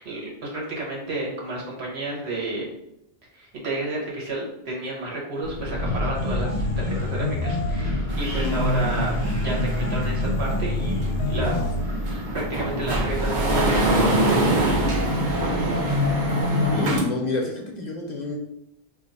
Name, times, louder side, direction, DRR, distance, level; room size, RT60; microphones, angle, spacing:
voice 1, 0.0-2.7 3.3-11.7 12.0-14.6, right 2 dB, 90° right, -3 dB, 1.3 m, -31 dB
Wind, 5.4-16.4, left 1 dB, 75° right, 1.2 m, -32 dB
sound 1, 6.1-8.0 8.4-12.0, left 2 dB, 85° left, 0.8 m, -28 dB
sound 2, 8.1-17.0, right 1 dB, 55° right, 0.8 m, -24 dB
voice 2, 16.7-18.4, left 3 dB, 50° left, 0 dB, 0.6 m, -28 dB
2.6 x 2.5 x 4.0 m, 0.83 s
omnidirectional pair, 1.1 m